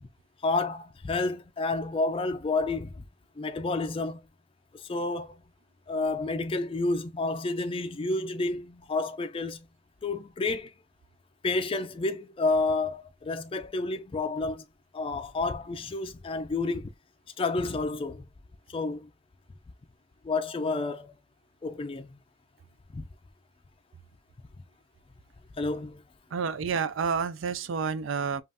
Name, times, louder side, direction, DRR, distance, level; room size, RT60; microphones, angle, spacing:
voice 1, 0.4-3.0 3.4-4.2 4.7-5.4 5.9-9.6 10.0-10.7 11.4-14.6 14.9-16.9 17.4-18.2 18.7-19.1 20.2-21.1 21.6-22.2 22.9-23.0 25.6-26.0, left 3 dB, 25° left, 0.4 m, -30 dB
voice 2, 26.3-28.4, right 6 dB, 70° right, 0.4 m, -29 dB
5.4 x 2.4 x 2.6 m
head